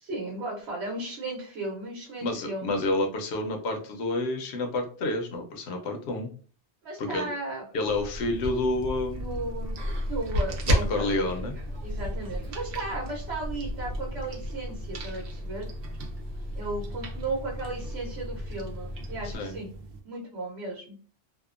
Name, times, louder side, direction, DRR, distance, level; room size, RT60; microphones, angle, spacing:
voice 1, 0.0-2.8 6.8-7.7 9.2-9.8 10.1-11.3 11.8-15.7 16.5-19.7 20.0-21.0, right 2 dB, 85° right, -3 dB, 1.1 m, -35 dB
voice 2, 2.2-6.3 7.0-7.3 7.7-9.5 10.6-11.6 19.2-19.5, left 2 dB, 85° left, 3 dB, 0.9 m, -29 dB
sound 1, 7.8-20.0, equal, 65° right, 0.8 m, -34 dB
Bus, 9.8-19.4, left 1 dB, 45° right, 0.3 m, -39 dB
2.7 x 2.1 x 2.4 m, 0.41 s
omnidirectional pair, 1.1 m